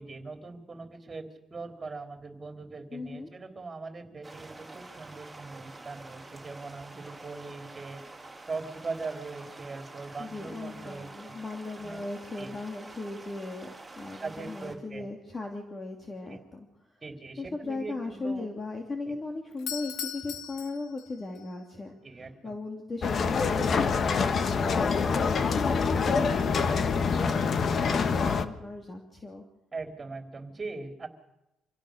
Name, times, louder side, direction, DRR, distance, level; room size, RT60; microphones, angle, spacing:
voice 1, 0.0-8.2 8.5-11.4 11.8-12.0 12.4-12.6 14.2-15.1 16.3-16.4 17.0-18.4 19.0-19.1 22.0-22.6 29.7-31.1, right 3 dB, 30° right, 5 dB, 3.9 m, -41 dB
voice 2, 2.9-3.3 10.2-13.7 14.0-16.7 17.4-22.0 22.4-29.4, left 3 dB, 30° left, 2 dB, 2.9 m, -37 dB
sound 1, 4.2-14.7, right 2 dB, 10° right, 4.2 m, -47 dB
Doorbell, 19.5-21.5, left 10 dB, 90° left, 1.6 m, -38 dB
sound 2, 23.0-28.5, left 5 dB, 50° left, 1.4 m, -26 dB
26.5 x 16.5 x 6.7 m, 0.90 s
cardioid pair, 90°, 0 cm